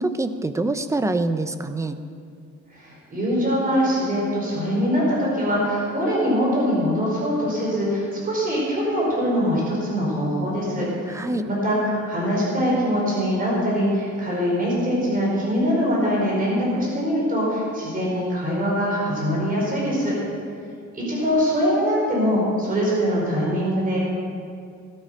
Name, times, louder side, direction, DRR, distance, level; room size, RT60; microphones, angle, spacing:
voice 1, 0.0-2.0 11.1-11.5, right 2 dB, 10° right, 9 dB, 0.5 m, -25 dB
voice 2, 2.7-20.1 20.9-24.0, equal, 30° right, -5 dB, 4.7 m, -23 dB
18.0 x 12.0 x 5.2 m, 2.3 s
wide cardioid pair, 175°, 30 cm